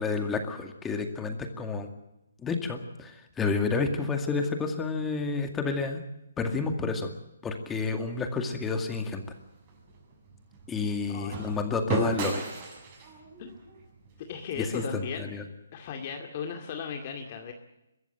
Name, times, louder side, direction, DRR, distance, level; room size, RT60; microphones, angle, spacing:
voice 1, 0.0-1.9 2.4-6.0 6.4-7.1 7.4-9.2 10.7-12.4 14.6-15.4, left 4 dB, 10° left, 5 dB, 2.1 m, -30 dB
sound 1, 9.1-15.2, right 3 dB, 30° right, 7.3 m, -36 dB
voice 2, 11.1-11.6 13.4-13.5 14.2-15.4 15.7-17.5, left 6 dB, 35° left, 4 dB, 2.2 m, -36 dB
23.5 x 14.5 x 9.0 m, 0.91 s
hypercardioid pair, 155°, 0 cm